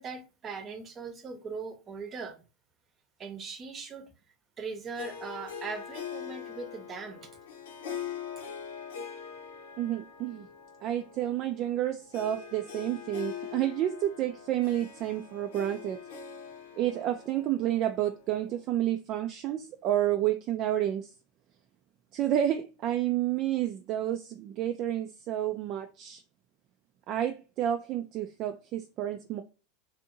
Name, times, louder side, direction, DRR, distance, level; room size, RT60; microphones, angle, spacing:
voice 1, 0.0-2.4 3.2-4.1 4.6-7.3, right 4 dB, 30° right, 0.7 m, -40 dB
Harp, 4.9-18.6, left 7 dB, 85° left, 0.8 m, -43 dB
voice 2, 9.8-10.5 10.8-16.0 16.8-21.1 22.1-26.2 27.1-29.4, right 12 dB, 45° right, 0.3 m, -30 dB
2.7 x 2.5 x 2.6 m
supercardioid pair, 120°, 0 cm